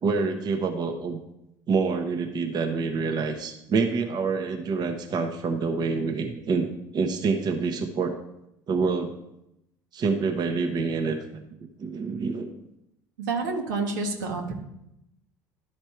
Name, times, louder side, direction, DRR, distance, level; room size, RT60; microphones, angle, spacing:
voice 1, 0.0-1.2 1.7-6.7 6.9-8.1 8.7-9.1 9.9-11.4 11.8-12.5, right 4 dB, 45° right, 5 dB, 1.0 m, -27 dB
voice 2, 13.2-14.5, right 3 dB, 85° right, 1 dB, 1.4 m, -28 dB
11.5 x 4.3 x 4.5 m, 0.83 s
hypercardioid pair, 80°, 10 cm